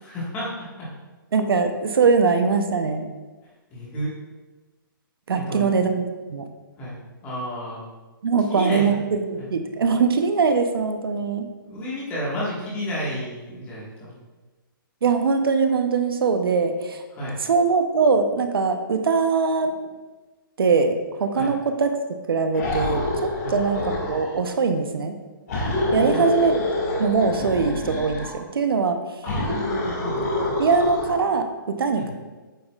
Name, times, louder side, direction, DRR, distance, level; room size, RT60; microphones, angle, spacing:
voice 1, 0.0-0.9 3.7-4.1 5.3-5.7 6.8-7.8 8.5-9.0 9.4-9.5 11.6-14.2 17.1-17.4 21.3-21.5 23.4-23.6 25.9-26.2 27.4-27.5 29.2-30.3 32.0-32.1, equal, 15° left, -6 dB, 1.6 m, -31 dB
voice 2, 1.3-3.1 5.3-6.5 8.2-11.5 15.0-17.0 17.4-19.8 20.6-22.0 22.3-25.1 25.9-26.6 27.0-29.0 30.1-32.1, right 4 dB, 85° right, 6 dB, 0.7 m, -22 dB
sound 1, 22.5-24.4 25.5-28.3 29.3-31.2, left 2 dB, 45° left, 1.9 m, -27 dB
8.4 x 5.5 x 2.4 m, 1.3 s
hypercardioid pair, 170°, 12 cm